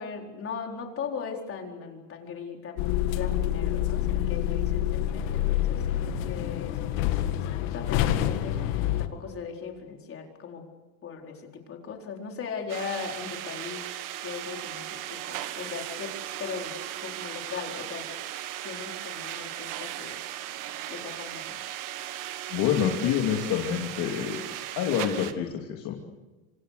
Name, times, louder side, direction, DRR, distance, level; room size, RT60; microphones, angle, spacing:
voice 1, 0.0-2.9 3.1-10.7 11.0-13.9 14.2-16.8 17.0-18.1 18.6-20.5 20.9-21.6, left 6 dB, 35° left, 2 dB, 4.4 m, -39 dB
sound 1, 2.8-9.1, left 12 dB, 70° left, 2.1 m, -27 dB
sound 2, 12.7-25.3, right 13 dB, 50° right, 1.8 m, -37 dB
voice 2, 22.5-24.4 24.8-26.0, left 9 dB, 55° left, 1 dB, 3.0 m, -27 dB
27.0 x 26.0 x 6.7 m, 1.2 s
supercardioid pair, 135°, 40 cm